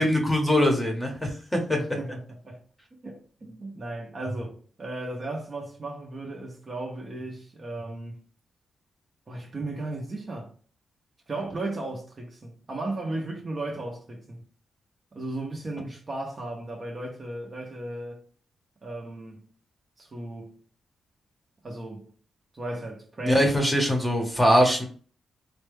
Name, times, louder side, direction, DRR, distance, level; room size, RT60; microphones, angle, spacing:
voice 1, 0.0-1.8 23.2-24.9, equal, 10° left, 0.9 m, -22 dB
voice 2, 1.7-2.6 3.0-8.2 9.3-10.5 11.3-14.4 15.1-18.2 18.8-19.4 20.0-20.6 21.6-22.1 22.5-23.5, right 2 dB, 25° right, 0.7 m, -35 dB
4.0 x 2.2 x 3.3 m
wide cardioid pair, 180°, 0 cm